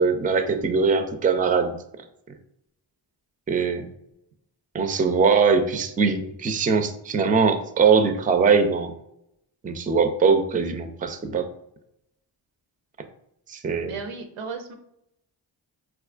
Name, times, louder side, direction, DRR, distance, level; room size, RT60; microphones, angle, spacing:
voice 1, 0.0-1.8 3.5-3.9 4.7-8.9 9.6-11.5 13.5-13.9, right 5 dB, 20° right, 8 dB, 0.4 m, -21 dB
voice 2, 13.8-14.7, right 5 dB, 90° right, 5 dB, 0.6 m, -34 dB
4.2 x 2.3 x 2.4 m, 0.80 s
cardioid pair, 40°, 50 cm